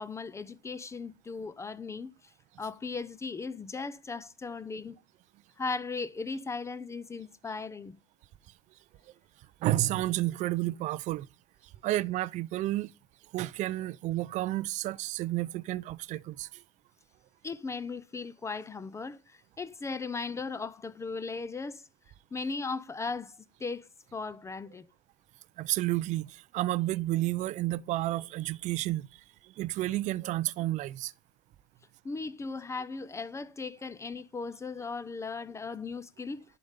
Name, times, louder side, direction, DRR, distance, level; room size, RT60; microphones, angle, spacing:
voice 1, 0.0-2.3 2.6-5.0 5.6-8.0 17.4-21.8 22.3-24.9 32.0-36.4, left 4 dB, 15° left, 0.6 m, -37 dB
voice 2, 9.6-11.3 11.8-12.9 13.3-16.6 25.6-31.1, right 16 dB, 40° right, 0.4 m, -31 dB
10.5 x 5.1 x 5.5 m
supercardioid pair, 125°, 20 cm